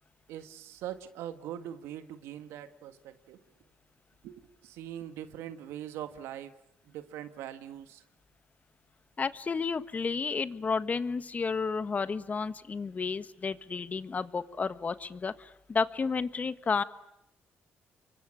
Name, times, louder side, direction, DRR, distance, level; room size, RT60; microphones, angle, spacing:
voice 1, 0.3-3.4 4.2-6.6 6.9-8.0, right 11 dB, 90° right, 10 dB, 1.7 m, -42 dB
voice 2, 9.2-16.8, left 5 dB, 35° left, 13 dB, 1.4 m, -32 dB
28.0 x 24.0 x 8.7 m, 0.80 s
cardioid pair, 75°, 4 cm